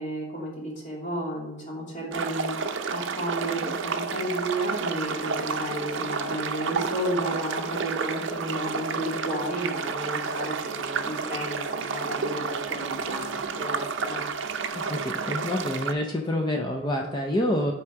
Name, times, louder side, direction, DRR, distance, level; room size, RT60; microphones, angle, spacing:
voice 1, 0.0-2.5 2.9-14.2, right 1 dB, 40° left, -4 dB, 2.6 m, -32 dB
sound 1, 2.1-15.9, right 5 dB, 60° right, 0.6 m, -31 dB
voice 2, 14.9-17.7, left 1 dB, 20° left, 1 dB, 0.5 m, -27 dB
6.0 x 4.6 x 6.0 m, 0.96 s
head